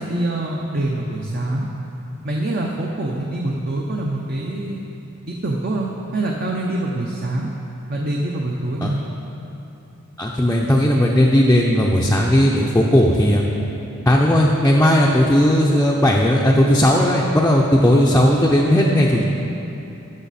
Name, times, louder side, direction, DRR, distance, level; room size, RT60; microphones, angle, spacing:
voice 1, 0.0-1.7 2.2-4.8 5.3-7.5 7.9-9.0, right 1 dB, 45° right, -1 dB, 0.6 m, -25 dB
voice 2, 10.2-13.4 14.1-19.2, equal, 10° left, -3 dB, 0.5 m, -16 dB
12.5 x 6.3 x 4.1 m, 2.9 s
head